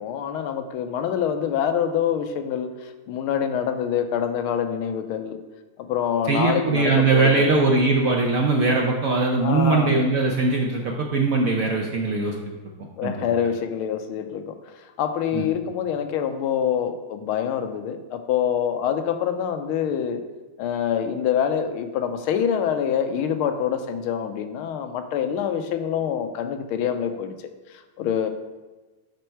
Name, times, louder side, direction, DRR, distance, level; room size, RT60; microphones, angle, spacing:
voice 1, 0.0-5.4 5.8-7.7 9.4-10.1 13.0-14.5 15.0-20.2 20.6-28.3, left 8 dB, 80° left, 8 dB, 1.5 m, -26 dB
voice 2, 6.3-12.6 13.0-13.3 15.3-15.4, right 3 dB, 65° right, 1 dB, 0.8 m, -21 dB
7.7 x 5.2 x 4.6 m, 1.2 s
omnidirectional pair, 2.3 m